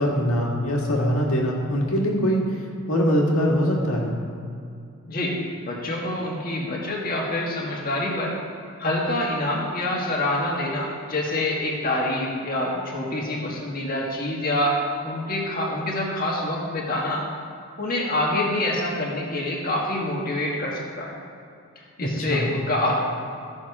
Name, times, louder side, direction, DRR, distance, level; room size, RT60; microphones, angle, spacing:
voice 1, 0.0-2.6 2.9-4.2 22.0-22.5, equal, 80° left, -1 dB, 1.9 m, -23 dB
voice 2, 5.1-8.4 8.8-17.3 17.8-21.2 21.8-22.9, left 1 dB, 40° left, -2 dB, 1.8 m, -26 dB
14.0 x 6.4 x 4.8 m, 2.5 s
head